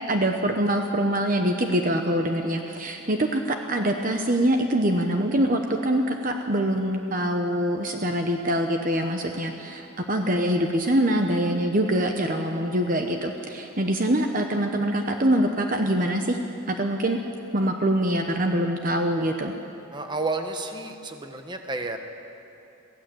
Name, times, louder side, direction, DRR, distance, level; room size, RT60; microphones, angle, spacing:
voice 1, 0.1-16.4 16.7-17.2 17.5-19.5, right 1 dB, 40° right, 4 dB, 1.0 m, -24 dB
voice 2, 19.9-22.0, right 3 dB, 20° right, 5 dB, 1.2 m, -31 dB
23.0 x 16.0 x 7.8 m, 2.7 s
head